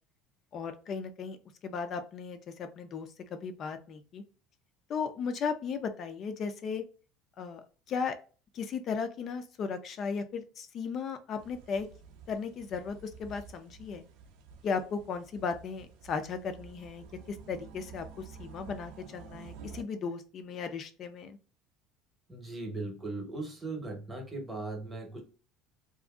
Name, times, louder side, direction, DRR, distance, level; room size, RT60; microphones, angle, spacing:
voice 1, 0.5-1.4 1.6-4.2 4.9-6.8 7.4-7.6 7.9-8.2 8.5-11.9 12.3-14.0 14.6-21.4, left 5 dB, 35° left, 8 dB, 0.3 m, -36 dB
sound 1, 11.4-19.8, right 6 dB, 65° right, 0.5 m, -51 dB
voice 2, 22.3-25.2, right 2 dB, 10° right, 0 dB, 0.8 m, -38 dB
2.7 x 2.5 x 2.3 m, 0.37 s
cardioid pair, 170°, 0 cm